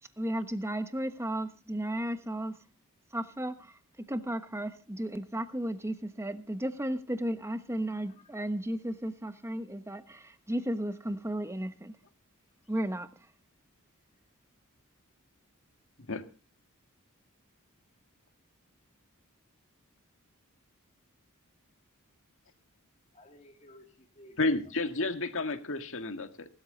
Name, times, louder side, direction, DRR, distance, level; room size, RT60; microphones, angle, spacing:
voice 1, 0.2-2.6 3.1-12.0 12.7-13.1, right 1 dB, 10° right, 1.2 m, -34 dB
voice 2, 7.8-8.4 12.6-12.7 23.1-24.4, left 1 dB, 30° left, 2.5 m, -57 dB
voice 3, 24.4-26.5, left 2 dB, 65° left, 1.9 m, -31 dB
19.5 x 13.0 x 4.0 m
head